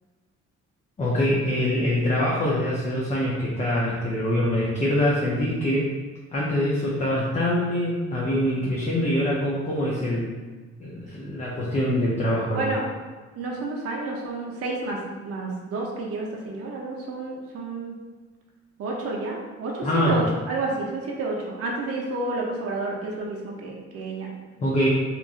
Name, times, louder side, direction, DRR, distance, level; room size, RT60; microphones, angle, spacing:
voice 1, 1.0-5.9 6.3-10.3 10.8-12.7 19.8-20.2 24.6-24.9, left 1 dB, 25° left, -5 dB, 0.5 m, -24 dB
voice 2, 12.5-12.9 13.4-17.9 18.8-24.3, right 2 dB, 50° right, -2 dB, 0.6 m, -30 dB
2.9 x 2.5 x 2.4 m, 1.3 s
cardioid pair, 90°, 30 cm